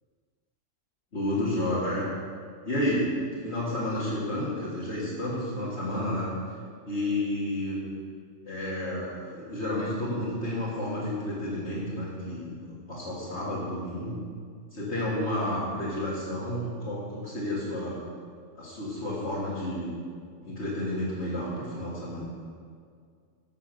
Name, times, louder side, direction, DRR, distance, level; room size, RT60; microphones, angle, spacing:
voice 1, 1.1-2.1 2.6-3.1 3.4-6.3 6.9-7.8 8.5-14.1 14.7-18.0 18.6-19.9 20.4-22.3, left 1 dB, 60° left, -9 dB, 2.6 m, -31 dB
12.5 x 6.1 x 6.8 m, 2.1 s
omnidirectional pair, 1.3 m